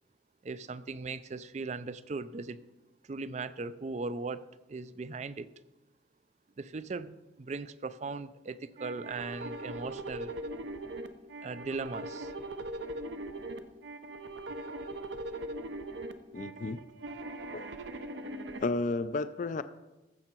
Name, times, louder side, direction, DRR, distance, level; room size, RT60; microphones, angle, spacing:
voice 1, 0.4-2.6 3.1-5.5 6.6-10.3 11.4-12.3, right 3 dB, 40° right, 15 dB, 0.4 m, -38 dB
sound 1, 8.8-18.6, right 1 dB, 75° right, 0.7 m, -40 dB
voice 2, 16.3-16.8 17.5-17.7 18.6-19.6, left 3 dB, 45° left, 13 dB, 0.4 m, -32 dB
14.5 x 6.7 x 4.5 m, 1.1 s
head